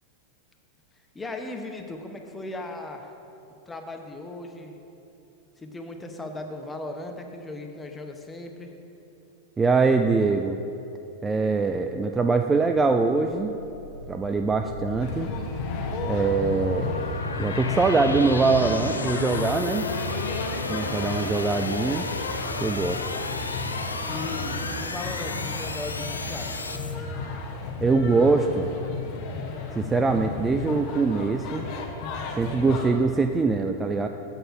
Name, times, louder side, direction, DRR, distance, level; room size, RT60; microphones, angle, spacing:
voice 1, 1.1-3.1 3.7-4.8 5.6-8.7 24.0-26.6, left 2 dB, 10° left, 4 dB, 0.8 m, -37 dB
voice 2, 9.6-10.6 11.2-13.5 14.1-15.3 16.0-17.0 17.4-19.9 20.7-22.1 22.6-23.0 27.8-28.7 29.8-31.7 32.3-34.1, right 4 dB, 15° right, 5 dB, 0.3 m, -23 dB
sound 1, 12.8-26.9, left 3 dB, 80° left, 0.5 m, -33 dB
sound 2, 15.0-32.9, left 3 dB, 40° left, 1.0 m, -33 dB
7.8 x 6.5 x 5.6 m, 2.9 s
figure-of-eight pair, 90°, 0 cm